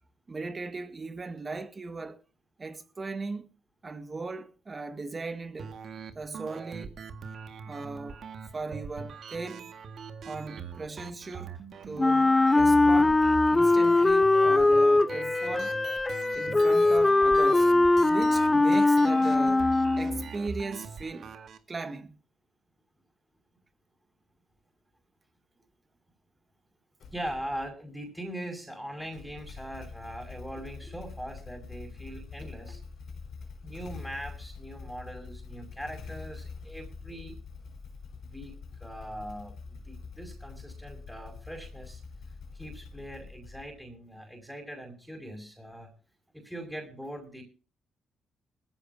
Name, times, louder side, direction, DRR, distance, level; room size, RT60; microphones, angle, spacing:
voice 1, 0.3-2.2 2.6-3.5 3.8-5.8 6.2-7.0 7.7-8.2 8.5-9.7 10.2-13.2 13.5-15.7 16.3-17.7 18.1-19.7 20.0-21.3 21.7-22.2, right 3 dB, 30° right, 1.8 m, -38 dB
sound 1, 5.6-21.6, right 5 dB, 60° right, 1.9 m, -42 dB
Wind instrument woodwind instrument, 12.0-20.3, left 2 dB, 20° left, 0.7 m, -21 dB
Motorcycle / Engine starting, 27.0-27.7 29.0-43.9, left 4 dB, 65° left, 4.6 m, -45 dB
voice 2, 27.1-32.8 33.6-37.4 38.2-42.0 42.5-45.9 46.3-47.4, right 1 dB, ahead, 5.6 m, -41 dB
20.5 x 15.0 x 2.8 m
cardioid pair, 90°, 0 cm